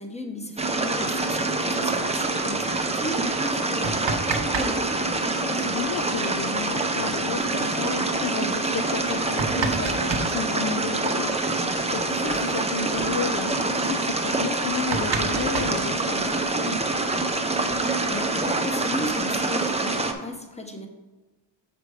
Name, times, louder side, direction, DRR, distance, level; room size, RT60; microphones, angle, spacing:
voice 1, 0.0-5.1 18.1-20.9, left 1 dB, 15° left, 4 dB, 1.1 m, -36 dB
sound 1, 0.6-20.1, right 2 dB, 15° right, 0.7 m, -26 dB
sound 2, 3.6-4.7 5.0-5.1 6.8-6.9 7.3-7.4 8.0-8.1 8.9-10.3 11.8-11.9 12.2-12.4 12.8-13.1 13.7-13.8 14.2-14.3 14.6-16.4 17.3-18.2, right 4 dB, 70° right, 0.9 m, -30 dB
voice 2, 5.3-16.8, left 6 dB, 45° left, 8 dB, 0.5 m, -33 dB
6.7 x 5.2 x 4.8 m, 1.2 s
wide cardioid pair, 75°, 46 cm